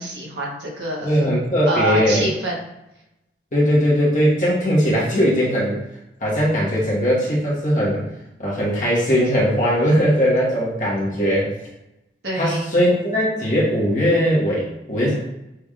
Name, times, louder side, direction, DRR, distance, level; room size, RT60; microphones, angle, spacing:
voice 1, 0.0-1.2 1.6-2.7 12.2-12.7, right 2 dB, 75° right, -3 dB, 1.2 m, -26 dB
voice 2, 1.0-2.2 3.5-5.8 6.2-8.1 8.4-11.5 12.4-15.1, equal, 45° left, -5 dB, 1.4 m, -19 dB
6.0 x 3.4 x 2.5 m, 0.91 s
head